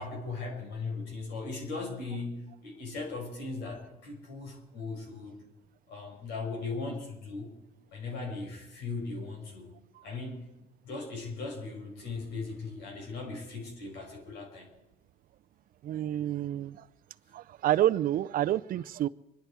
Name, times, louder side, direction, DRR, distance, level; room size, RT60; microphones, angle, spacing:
voice 1, 0.0-5.4 5.9-7.5 7.9-9.8 10.0-10.5 10.8-14.7, left 3 dB, 85° left, 5.2 m, -38 dB
voice 2, 15.8-16.9 17.3-19.1, right 12 dB, 55° right, 0.5 m, -28 dB
24.5 x 11.5 x 4.7 m
cardioid pair, 110°, 17 cm